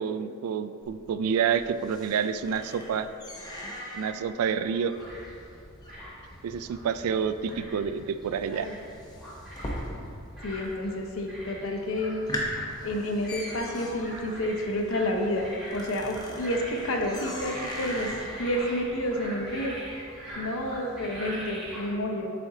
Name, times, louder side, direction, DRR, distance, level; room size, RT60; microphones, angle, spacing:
voice 1, 0.0-3.1 3.9-5.0 6.4-8.7, right 7 dB, 80° right, 12 dB, 0.3 m, -28 dB
sound 1, 0.8-10.4 10.6-11.2 11.6-11.7 12.1-20.4, left 1 dB, 20° left, 0.7 m, -40 dB
sound 2, 4.9-21.9, equal, ahead, 1.5 m, -43 dB
voice 2, 10.4-12.2 12.8-18.1 18.4-20.1 20.3-22.3, left 1 dB, 65° left, 2 dB, 0.7 m, -30 dB
7.5 x 4.3 x 3.7 m, 2.5 s
head